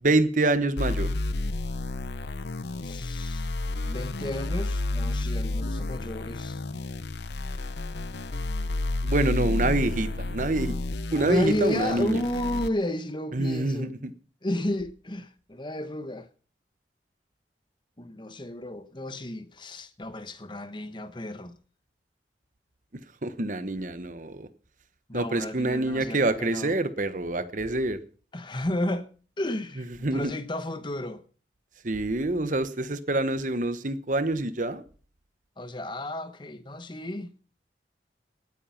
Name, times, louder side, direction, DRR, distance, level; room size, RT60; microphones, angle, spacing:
voice 1, 0.0-1.1 9.0-10.7 11.1-12.2 13.3-14.1 23.2-24.5 25.1-28.0 30.0-30.3 31.8-34.8, right 2 dB, 45° right, 1.0 m, -26 dB
sound 1, 0.8-12.7, left 2 dB, 75° left, 0.8 m, -31 dB
voice 2, 2.8-3.5 3.8-6.6 11.1-13.9 14.4-16.3 18.0-21.6 25.1-26.7 28.3-29.1 29.4-31.2 35.6-37.3, left 1 dB, 25° left, 1.1 m, -32 dB
18.0 x 8.9 x 5.8 m
head